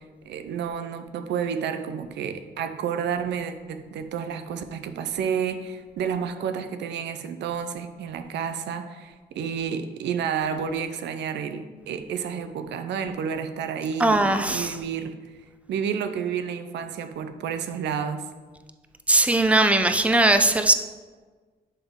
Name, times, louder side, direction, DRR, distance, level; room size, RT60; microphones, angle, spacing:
voice 1, 0.0-15.2 15.7-18.2, right 7 dB, 85° right, 9 dB, 0.5 m, -30 dB
voice 2, 14.0-14.8 19.1-20.7, right 2 dB, 5° right, 7 dB, 0.5 m, -19 dB
11.0 x 3.6 x 3.6 m, 1.4 s
cardioid pair, 70°, 18 cm